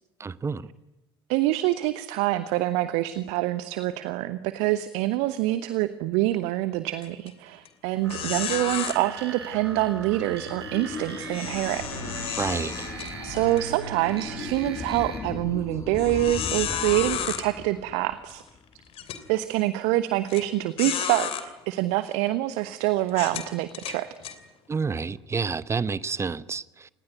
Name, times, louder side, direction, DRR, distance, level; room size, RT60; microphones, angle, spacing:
voice 1, 0.2-0.7 12.4-12.9 24.7-26.9, right 5 dB, 20° right, 0.9 m, -29 dB
voice 2, 1.3-11.8 13.2-18.4 19.3-24.1, right 16 dB, 55° right, 1.1 m, -26 dB
sound 1, 7.0-7.3 7.6-7.7 8.1-8.9 11.3-13.6 14.1-14.3 14.9-15.0 16.0-17.4 18.3-18.4 18.9-19.2 20.3-20.4 20.8-21.4 22.1-22.3 23.1-24.4, left 10 dB, 45° left, 3.0 m, -32 dB
sound 2, 8.0-15.2, right 5 dB, 80° right, 4.4 m, -39 dB
sound 3, 9.3-18.9, left 5 dB, 25° left, 1.5 m, -39 dB
28.0 x 19.5 x 9.3 m
figure-of-eight pair, 60°, 13 cm